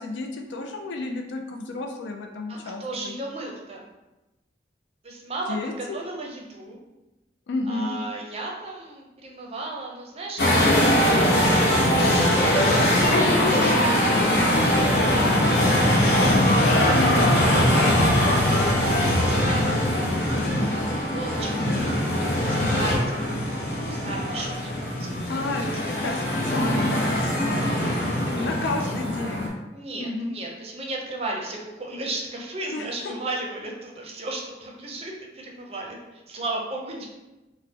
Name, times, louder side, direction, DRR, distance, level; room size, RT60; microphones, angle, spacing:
voice 1, 0.0-3.2 5.5-6.0 7.5-8.0 16.7-17.2 25.3-25.6 26.0-29.5 30.0-30.3 32.7-32.9, left 2 dB, 85° left, 3 dB, 0.4 m, -31 dB
voice 2, 2.5-3.8 5.0-6.8 7.7-12.6 13.0-16.6 17.6-20.5 20.8-25.8 27.7-28.9 29.7-37.1, right 2 dB, 35° right, -1 dB, 0.5 m, -36 dB
sound 1, 10.4-29.5, left 1 dB, 60° left, 0.7 m, -21 dB
4.2 x 2.1 x 2.8 m, 1.0 s
head